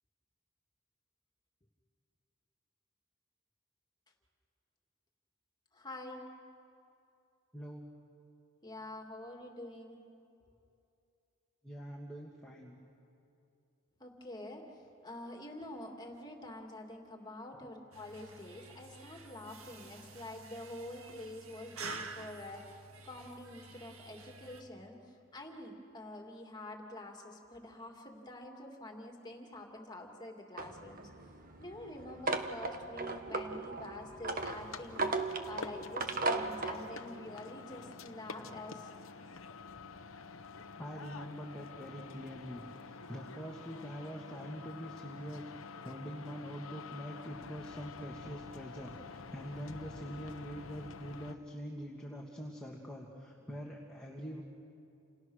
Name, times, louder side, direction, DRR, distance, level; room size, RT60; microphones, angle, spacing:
voice 1, 5.7-6.3 8.6-10.0 14.0-31.1 31.6-35.1 35.5-38.9, left 1 dB, 20° left, 2 dB, 2.5 m, -47 dB
voice 2, 7.5-7.9 11.6-12.7 40.8-54.4, equal, 5° left, -3 dB, 1.9 m, -44 dB
sound 1, 17.9-24.6, right 4 dB, 80° right, 2.0 m, -49 dB
sound 2, 30.6-36.8, right 3 dB, 40° right, 1.4 m, -36 dB
sound 3, 34.3-51.3, left 4 dB, 70° left, 1.1 m, -49 dB
29.0 x 29.0 x 6.5 m, 2.7 s
head